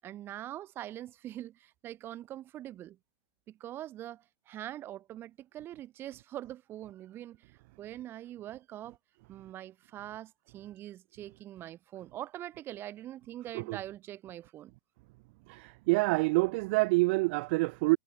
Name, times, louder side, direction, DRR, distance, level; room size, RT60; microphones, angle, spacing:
voice 1, 0.0-3.0 3.5-9.0 9.3-14.7, right 13 dB, 25° right, 7.6 m, -43 dB
voice 2, 15.5-18.0, right 25 dB, 45° right, 0.8 m, -27 dB
hypercardioid pair, 140°, 9 cm